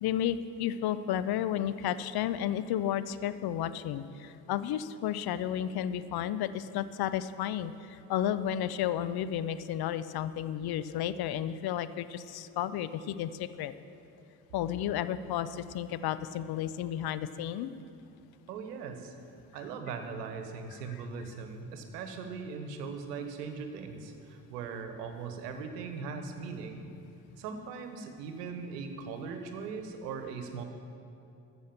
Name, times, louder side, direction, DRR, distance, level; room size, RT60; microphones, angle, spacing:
voice 1, 0.0-13.7 14.5-17.7, left 10 dB, 50° left, 14 dB, 0.7 m, -32 dB
voice 2, 18.5-19.1 19.5-26.9 27.4-30.6, right 5 dB, 80° right, 6 dB, 1.2 m, -39 dB
14.0 x 6.2 x 7.2 m, 2.6 s
hypercardioid pair, 55°, 48 cm